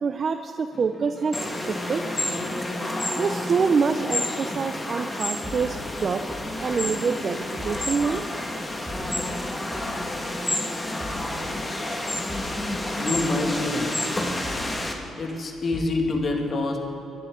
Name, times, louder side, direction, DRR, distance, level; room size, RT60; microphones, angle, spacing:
voice 1, 0.0-2.0 3.2-6.2 6.6-8.2 11.8-12.0, right 5 dB, 45° right, 7 dB, 0.6 m, -26 dB
sound 1, 0.7-15.8, equal, ahead, 2.7 m, -42 dB
sound 2, 1.3-14.9, left 1 dB, 20° left, 1.8 m, -30 dB
voice 2, 13.0-14.0 15.2-16.8, left 2 dB, 45° left, 2 dB, 2.2 m, -26 dB
24.5 x 11.0 x 3.8 m, 3.0 s
cardioid pair, 95°, 0 cm